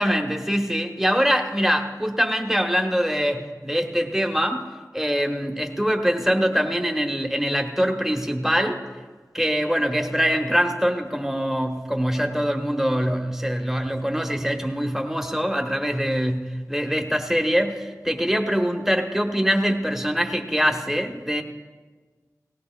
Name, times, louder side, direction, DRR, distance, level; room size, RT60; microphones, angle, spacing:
voice 1, 0.0-4.6 4.9-8.8 9.3-21.4, equal, 5° right, 3 dB, 1.1 m, -23 dB
18.5 x 16.5 x 2.3 m, 1.4 s
wide cardioid pair, 40°, 7 cm